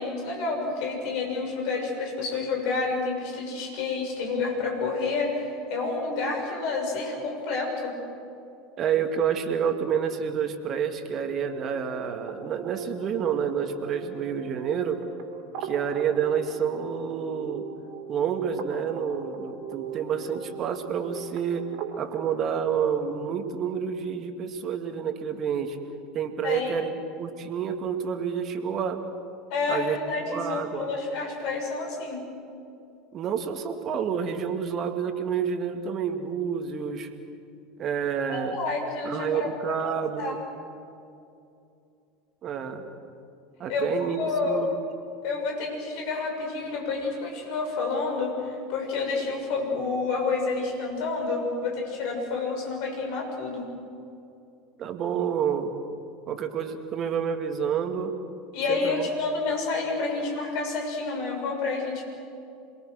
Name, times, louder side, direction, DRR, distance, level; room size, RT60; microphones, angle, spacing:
voice 1, 0.0-8.0 26.4-26.8 29.5-32.3 38.3-39.9 40.2-40.4 43.7-43.9 44.2-44.6 45.2-53.7 58.5-62.0, left 4 dB, 60° left, 2 dB, 6.3 m, -29 dB
voice 2, 8.8-15.0 15.6-17.7 18.1-21.7 22.0-25.8 26.1-26.9 27.2-29.0 29.7-30.9 33.1-37.1 37.8-38.6 39.0-40.4 42.4-42.9 43.6-44.8 54.8-55.7 56.3-58.2 58.7-59.1, right 7 dB, 40° right, 6 dB, 2.3 m, -29 dB
sound 1, 11.4-23.6, right 6 dB, 60° right, 3.3 m, -40 dB
28.0 x 22.0 x 6.4 m, 2.6 s
hypercardioid pair, 80°, 0 cm